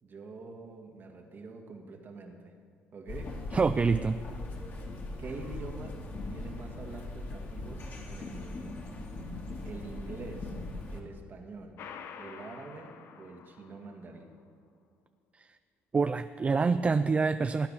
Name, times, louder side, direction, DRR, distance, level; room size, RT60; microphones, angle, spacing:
voice 1, 0.0-2.6 2.9-3.3 5.2-6.0 6.3-8.8 9.6-10.6 10.9-11.8 12.2-14.3, right 3 dB, 45° right, 3 dB, 2.1 m, -45 dB
sound 1, 3.1-11.0, left 2 dB, 45° left, 2.3 m, -40 dB
voice 2, 3.5-4.2 15.4-15.5 15.9-17.7, right 4 dB, 25° right, 11 dB, 0.4 m, -26 dB
sound 2, 11.8-14.2, left 6 dB, 65° left, 1.1 m, -47 dB
18.0 x 9.4 x 5.7 m, 2.1 s
cardioid pair, 95°, 5 cm